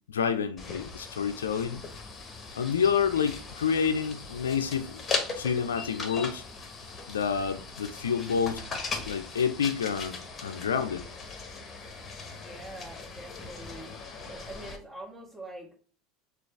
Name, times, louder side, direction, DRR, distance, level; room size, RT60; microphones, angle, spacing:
voice 1, 0.1-1.8 2.5-5.0 5.3-6.4 7.1-8.6 9.1-10.2 10.4-11.1, left 7 dB, 80° left, 0.5 m, -28 dB
sound 1, 0.6-14.8, left 4 dB, 25° left, 1.1 m, -39 dB
voice 2, 12.4-13.9 14.3-15.7, right 1 dB, 20° right, 1.8 m, -44 dB
6.2 x 2.5 x 3.3 m
hypercardioid pair, 75°, 0 cm